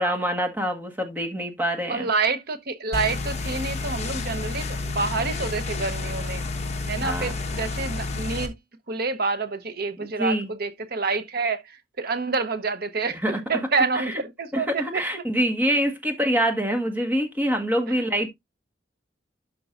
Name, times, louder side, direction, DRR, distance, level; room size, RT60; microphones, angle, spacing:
voice 1, 0.0-2.1 7.0-7.3 10.0-10.5 13.1-13.4 13.9-14.2 14.5-18.3, equal, 10° right, 1.5 m, -25 dB
voice 2, 1.9-6.4 6.9-8.5 8.9-11.6 12.0-15.0 17.9-18.0, right 4 dB, 55° right, 1.0 m, -28 dB
sound 1, 2.9-8.5, left 3 dB, 35° left, 1.3 m, -30 dB
12.0 x 4.7 x 2.5 m
head